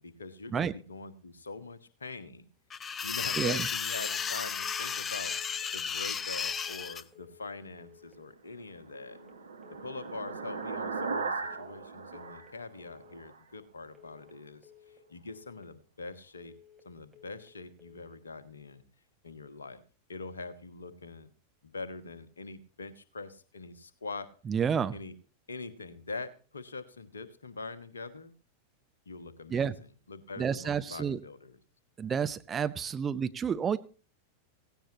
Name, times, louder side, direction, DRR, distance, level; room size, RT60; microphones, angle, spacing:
voice 1, 0.0-2.5 3.0-5.3 5.7-9.2 9.7-14.7 15.1-16.5 16.8-18.8 19.2-19.8 20.1-21.3 21.6-24.3 24.9-25.1 25.5-28.3 29.0-31.6, left 3 dB, 70° left, 11 dB, 1.4 m, -43 dB
sound 1, 2.7-7.0, left 6 dB, 20° left, 0.6 m, -33 dB
voice 2, 3.4-3.7 24.5-25.0 29.5-29.8 30.4-31.2 32.0-33.8, right 7 dB, 20° right, 11 dB, 0.8 m, -30 dB
sound 2, 3.9-4.3 4.6-5.0 5.3-5.7 6.4-6.8 7.1-7.5 7.8-8.2 8.9-9.3 9.6-10.0 10.3-10.7 11.4-11.8 12.1-12.5 12.8-13.2 13.9-14.3 14.6-15.0 15.3-15.7 16.5-16.9 17.1-17.5 17.8-18.2, left 8 dB, 5° right, 3.4 m, -57 dB
sound 3, 8.6-13.4, right 4 dB, 75° right, 1.6 m, -38 dB
17.0 x 16.5 x 2.9 m, 0.36 s
figure-of-eight pair, 90°, 0 cm